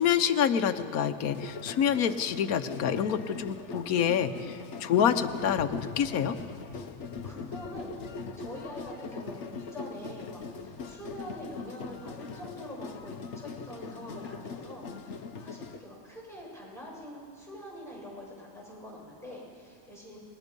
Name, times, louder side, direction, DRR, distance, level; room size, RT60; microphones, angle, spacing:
voice 1, 0.0-6.4, left 8 dB, 80° left, 10 dB, 1.3 m, -27 dB
sound 1, 1.3-15.8, left 4 dB, 55° left, 1.2 m, -41 dB
voice 2, 7.2-7.9 8.4-20.2, equal, ahead, -3 dB, 6.6 m, -45 dB
26.5 x 21.0 x 5.3 m, 2.3 s
omnidirectional pair, 1.5 m